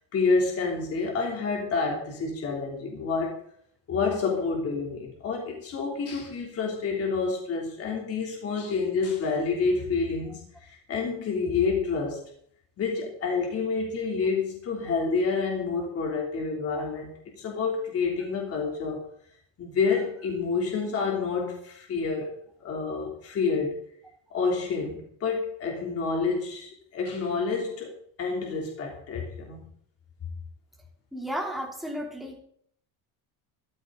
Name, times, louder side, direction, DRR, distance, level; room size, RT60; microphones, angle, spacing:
voice 1, 0.1-3.4 3.9-12.2 12.8-19.1 19.6-22.3 22.6-23.8 24.3-27.9 28.2-29.7, left 4 dB, 35° left, 0 dB, 3.2 m, -28 dB
voice 2, 31.1-32.4, equal, ahead, 0 dB, 3.2 m, -33 dB
14.5 x 14.0 x 4.0 m, 0.62 s
cardioid pair, 175°, 41 cm